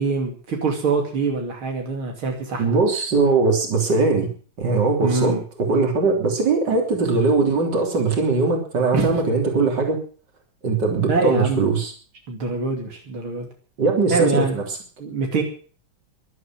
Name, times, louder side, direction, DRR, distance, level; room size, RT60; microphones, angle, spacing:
voice 1, 0.0-2.7 5.0-5.4 8.9-9.2 11.1-11.6 12.3-13.5 14.1-14.6 15.0-15.4, right 4 dB, 85° right, 2 dB, 3.5 m, -24 dB
voice 2, 2.6-4.3 4.6-10.0 10.6-11.9 13.8-14.6, right 3 dB, 55° right, 2 dB, 3.9 m, -20 dB
12.5 x 11.5 x 7.6 m, 0.41 s
omnidirectional pair, 2.3 m